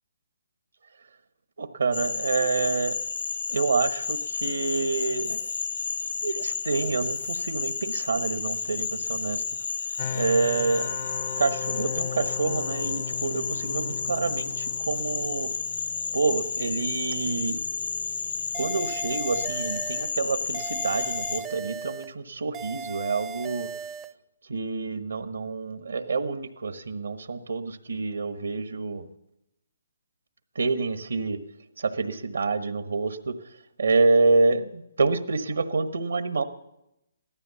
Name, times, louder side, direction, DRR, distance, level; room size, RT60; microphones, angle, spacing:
voice 1, 1.6-3.0 3.5-5.5 6.2-9.4 10.1-11.0 11.4-15.5 16.1-17.6 18.5-23.7 24.5-29.1 30.5-31.4 31.8-33.4 33.8-36.4, right 4 dB, 80° right, 11 dB, 1.2 m, -27 dB
Frog, 1.9-21.4, left 5 dB, 75° left, 0.8 m, -31 dB
sound 1, 10.0-22.8, left 9 dB, 40° left, 0.5 m, -40 dB
sound 2, 18.5-20.1 20.5-22.1 22.5-24.1, right 6 dB, 20° right, 0.5 m, -37 dB
15.0 x 13.0 x 7.0 m, 0.89 s
hypercardioid pair, 140°, 0 cm